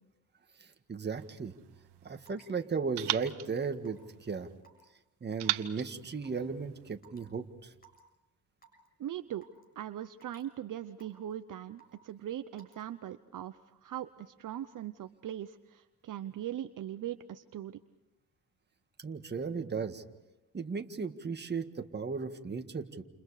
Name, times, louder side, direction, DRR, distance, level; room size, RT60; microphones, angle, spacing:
voice 1, 0.9-1.5 2.0-4.5 5.2-7.4 19.0-20.0 20.5-23.0, right 5 dB, 25° right, 6 dB, 1.8 m, -36 dB
sound 1, 1.2-2.4 3.0-4.6 5.4-7.0, right 14 dB, 80° right, 1.2 m, -39 dB
Raindrop / Water tap faucet / Drip, 2.3-2.5 3.1-3.3 3.9-4.1 4.6-5.0 5.4-5.6 6.2-6.4 7.0-7.2 7.8-8.0 8.6-8.9 9.4-9.6 10.2-10.5 11.0-11.3 11.8-12.1 12.6-12.8, right 5 dB, 25° left, 6.5 m, -58 dB
voice 2, 9.0-9.5 9.7-17.8, right 11 dB, 50° right, 10 dB, 0.9 m, -40 dB
29.5 x 29.0 x 5.0 m, 0.99 s
cardioid pair, 110°, 39 cm